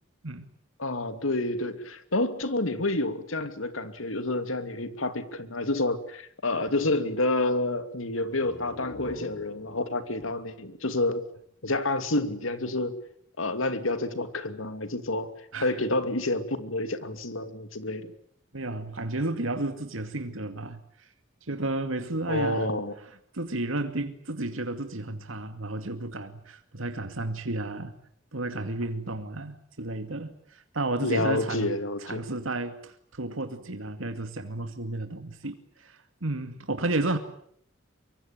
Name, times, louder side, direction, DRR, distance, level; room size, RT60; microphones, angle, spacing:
voice 1, 0.8-11.2 11.6-13.0 13.4-15.3 15.6-18.1 22.3-22.9 31.0-32.2, left 2 dB, 90° left, 2.6 m, -29 dB
sound 1, 8.2-11.8, left 1 dB, 65° left, 3.9 m, -45 dB
voice 2, 18.5-21.1 21.5-22.7 23.3-28.0 28.3-31.7 32.0-37.2, right 2 dB, 90° right, 2.3 m, -32 dB
24.5 x 24.0 x 9.0 m
head